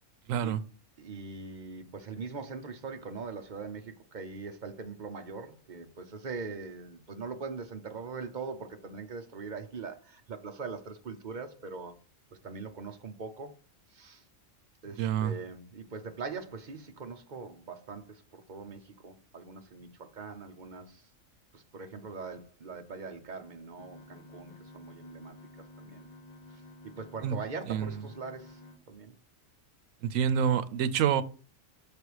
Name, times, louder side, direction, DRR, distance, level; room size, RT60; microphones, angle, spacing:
voice 1, 0.3-0.6 15.0-15.3 27.2-27.4 27.7-28.0 30.0-31.2, right 8 dB, 85° right, 1.0 m, -27 dB
voice 2, 1.0-12.0 12.4-13.5 13.9-14.2 14.8-21.0 21.5-25.4 25.8-26.1 26.8-28.6 28.9-29.1, right 4 dB, 40° right, 0.8 m, -42 dB
sound 1, 23.8-28.8, left 2 dB, 40° left, 0.8 m, -51 dB
6.9 x 3.4 x 4.7 m
omnidirectional pair, 1.3 m